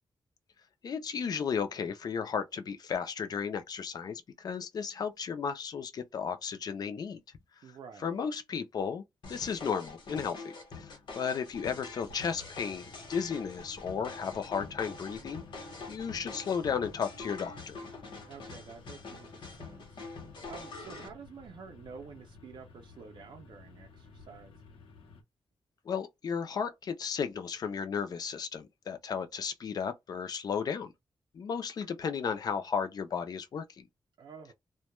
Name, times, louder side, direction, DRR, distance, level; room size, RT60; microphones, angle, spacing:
voice 1, 0.8-7.2 8.0-9.0 9.3-17.8 25.9-30.9 31.3-33.9, left 6 dB, 50° left, 0.4 m, -34 dB
voice 2, 7.6-8.2 18.2-20.0 20.5-24.5 34.2-34.5, right 6 dB, 65° right, 0.4 m, -49 dB
sound 1, 9.2-21.1, left 3 dB, 65° left, 0.9 m, -45 dB
sound 2, 11.1-25.2, left 3 dB, 90° left, 0.7 m, -55 dB
2.2 x 2.1 x 2.9 m
wide cardioid pair, 180°, 9 cm